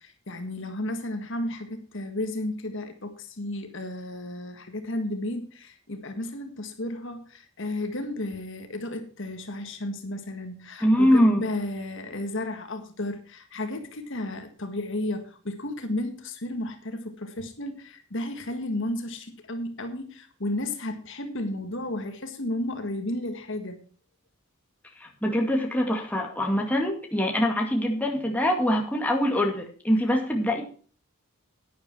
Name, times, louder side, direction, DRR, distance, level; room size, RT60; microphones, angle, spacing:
voice 1, 0.0-23.8, left 1 dB, 60° left, 6 dB, 1.7 m, -33 dB
voice 2, 10.8-11.4 25.0-30.6, equal, 5° left, 0 dB, 2.1 m, -23 dB
11.0 x 10.0 x 4.5 m, 0.41 s
head